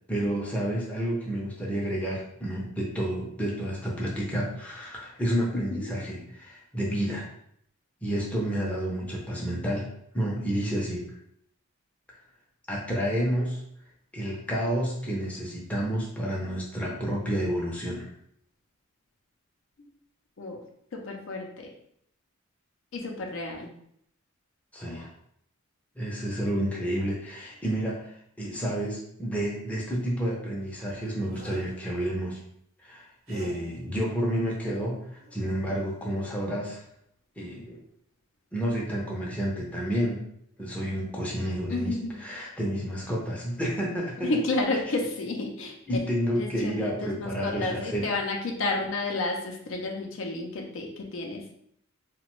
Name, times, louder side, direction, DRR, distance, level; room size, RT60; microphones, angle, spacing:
voice 1, 0.1-7.3 8.0-9.9 10.1-11.0 12.7-13.6 14.1-18.1 24.7-25.1 26.0-32.4 32.8-36.8 37.4-37.8 38.5-40.2 40.6-41.9 42.2-44.3 45.9-48.0, equal, 5° left, -4 dB, 0.5 m, -30 dB
voice 2, 5.5-6.0 19.8-19.9 20.4-20.6 20.9-21.7 22.9-23.7 41.7-42.2 44.2-46.0 46.4-51.4, left 2 dB, 60° left, 2 dB, 0.5 m, -31 dB
sound 1, 31.3-31.8 33.3-33.8 35.2-35.3 35.7-35.9, right 1 dB, 75° right, 0.9 m, -46 dB
2.9 x 2.1 x 3.0 m, 0.71 s
head